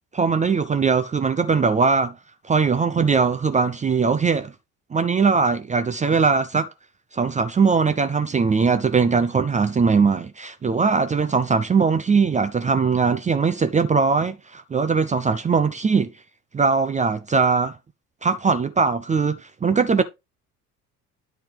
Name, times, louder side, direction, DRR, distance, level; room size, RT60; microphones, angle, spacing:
voice 1, 0.1-2.1 2.4-4.5 4.9-6.7 7.1-16.1 16.5-17.8 18.2-20.0, right 5 dB, 15° right, 0.6 m, -20 dB
10.0 x 4.3 x 3.6 m
figure-of-eight pair, 60°, 48 cm